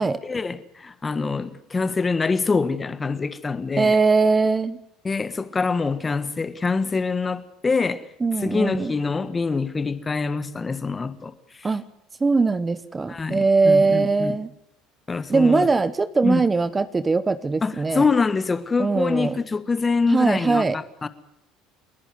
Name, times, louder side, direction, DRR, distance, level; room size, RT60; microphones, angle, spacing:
voice 1, 0.2-4.0 5.0-8.0 8.4-11.3 13.1-14.3 15.1-15.7 16.2-16.4 17.6-21.1, left 4 dB, 25° left, 1.5 m, -25 dB
voice 2, 3.8-4.8 8.2-8.9 11.6-11.9 12.2-14.5 15.3-18.1 18.8-19.4 20.1-20.8, right 4 dB, 20° right, 1.0 m, -21 dB
29.5 x 11.0 x 9.4 m
supercardioid pair, 80°, 0 cm